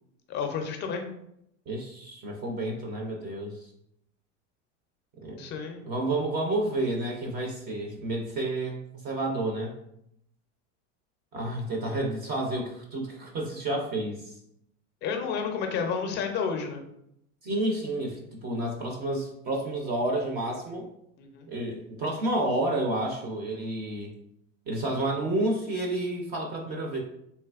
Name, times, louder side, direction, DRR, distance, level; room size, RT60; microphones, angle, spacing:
voice 1, 0.3-1.0 5.4-5.8 15.0-16.8 21.2-21.5, left 6 dB, 30° left, 4 dB, 0.4 m, -31 dB
voice 2, 1.7-3.6 5.2-5.5 5.9-8.8 9.0-9.7 11.3-14.4 17.4-20.9 21.5-24.1 24.7-27.0, right 1 dB, 30° right, 1 dB, 0.4 m, -30 dB
3.3 x 2.7 x 2.3 m, 0.76 s
supercardioid pair, 140°, 36 cm